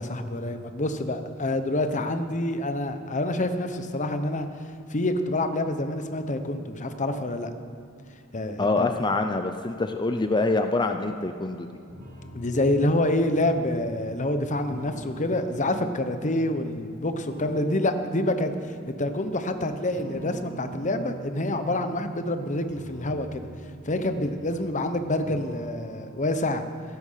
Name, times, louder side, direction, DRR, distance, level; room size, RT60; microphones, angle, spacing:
voice 1, 0.0-4.5 4.9-7.5 8.3-8.9 12.3-18.5 19.0-23.5 23.8-26.6, left 1 dB, 35° left, 8 dB, 1.0 m, -27 dB
voice 2, 8.6-11.7, left 3 dB, 20° left, 6 dB, 0.6 m, -25 dB
sound 1, 11.9-16.8 17.2-19.5 19.9-22.0 22.5-24.9 25.2-26.2, right 1 dB, 45° right, 2.8 m, -43 dB
15.5 x 13.0 x 5.8 m, 2.6 s
head